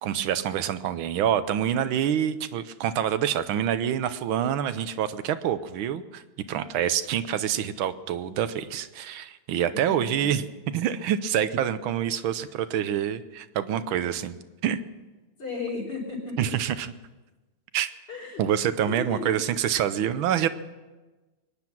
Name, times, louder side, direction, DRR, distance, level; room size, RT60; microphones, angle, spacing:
voice 1, 0.0-6.2 6.5-14.8 16.4-16.9 17.7-17.9 18.4-20.5, right 9 dB, 85° right, 12 dB, 1.6 m, -26 dB
voice 2, 9.7-10.3 15.4-16.4 18.1-18.4 18.9-19.4, left 3 dB, 60° left, -1 dB, 5.4 m, -34 dB
23.0 x 9.8 x 6.0 m, 1.2 s
omnidirectional pair, 2.2 m